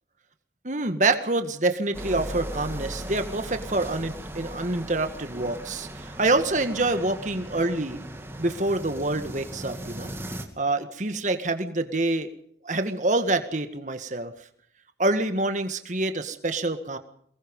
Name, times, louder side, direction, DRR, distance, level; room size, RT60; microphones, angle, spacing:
voice 1, 0.6-8.0 8.4-10.1 10.6-12.3 12.6-14.3 15.0-17.0, right 2 dB, 40° right, 8 dB, 1.9 m, -26 dB
sound 1, 1.9-10.4, right 1 dB, 15° right, 2.4 m, -38 dB
23.5 x 20.5 x 5.5 m, 0.65 s
head